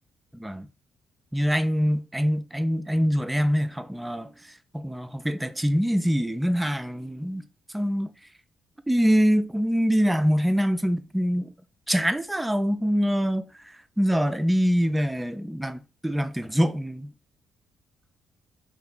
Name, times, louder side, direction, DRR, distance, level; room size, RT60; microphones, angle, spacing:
voice 1, 0.3-0.7 1.3-4.3 4.7-7.4 7.7-8.1 8.9-11.5 11.9-13.5 14.0-17.1, equal, 10° right, 0.4 m, -24 dB
2.8 x 2.5 x 3.9 m
hypercardioid pair, 50°, 0 cm